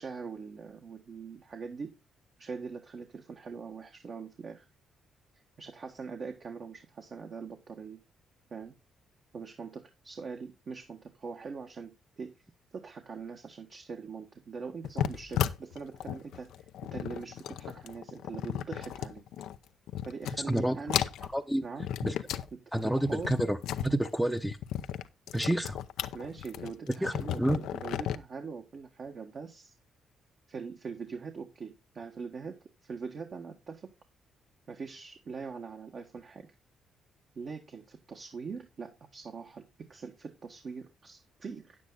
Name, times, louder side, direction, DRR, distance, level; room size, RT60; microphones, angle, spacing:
voice 1, 0.0-1.9 2.4-4.6 5.6-8.0 8.5-8.7 9.3-12.3 12.7-16.5 16.9-19.2 20.0-21.0 21.6-21.9 22.5-23.4 26.1-29.7 30.5-33.9 34.7-36.5 37.3-41.8, right 5 dB, 50° right, 3 dB, 1.5 m, -42 dB
sound 1, 14.8-19.6 19.9-20.6 20.9-22.5 22.8-28.2, left 11 dB, 85° left, 0.7 m, -35 dB
voice 2, 20.5-20.8 21.3-21.6 22.0-22.1 22.7-24.6 25.3-25.8 27.0-27.6, right 1 dB, 5° right, 4 dB, 0.9 m, -29 dB
9.4 x 8.5 x 3.9 m, 0.25 s
cardioid pair, 90°, 0 cm